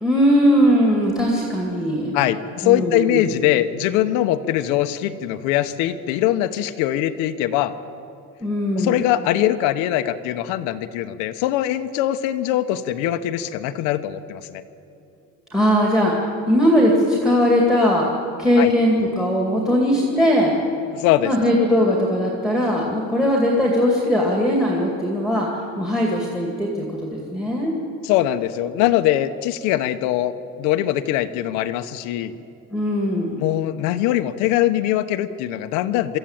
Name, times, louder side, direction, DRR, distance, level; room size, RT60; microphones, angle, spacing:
voice 1, 0.0-2.1 2.6-3.2 8.4-9.0 15.5-16.1 16.5-18.1 18.4-20.5 21.2-25.5 25.8-27.7 32.7-33.4, equal, ahead, -2 dB, 2.2 m, -19 dB
voice 2, 2.1-7.8 8.8-14.6 18.6-18.7 20.9-21.3 28.0-32.4 33.4-36.2, left 13 dB, 85° left, 9 dB, 1.0 m, -22 dB
23.5 x 14.0 x 8.8 m, 2.6 s
cardioid pair, 175°, 29 cm